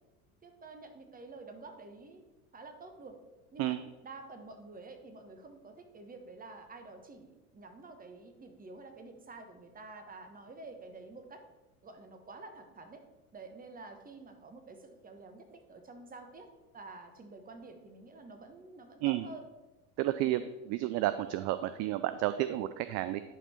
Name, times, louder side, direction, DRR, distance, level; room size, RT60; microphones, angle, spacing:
voice 1, 0.4-2.2 2.5-3.1 3.5-3.8 4.0-11.4 11.8-13.0 13.3-16.5 16.7-19.4, right 3 dB, 20° right, 6 dB, 1.3 m, -49 dB
voice 2, 20.0-23.2, right 14 dB, 40° right, 12 dB, 0.4 m, -31 dB
11.0 x 4.5 x 4.4 m, 1.1 s
hypercardioid pair, 80°, 43 cm